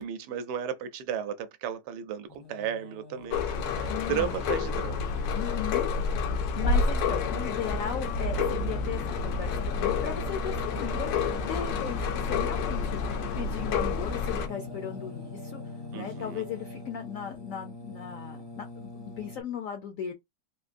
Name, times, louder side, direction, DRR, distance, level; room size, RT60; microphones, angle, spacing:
voice 1, 0.0-5.1 15.9-16.4, right 8 dB, 75° right, 1.2 m, -34 dB
Singing, 2.3-19.4, left 3 dB, 30° left, 0.5 m, -42 dB
sound 1, 3.3-14.5, left 4 dB, 90° left, 1.4 m, -29 dB
voice 2, 3.9-4.3 5.3-5.9 6.2-15.6 15.9-20.1, left 8 dB, 70° left, 0.8 m, -37 dB
3.6 x 2.5 x 2.5 m
omnidirectional pair, 1.9 m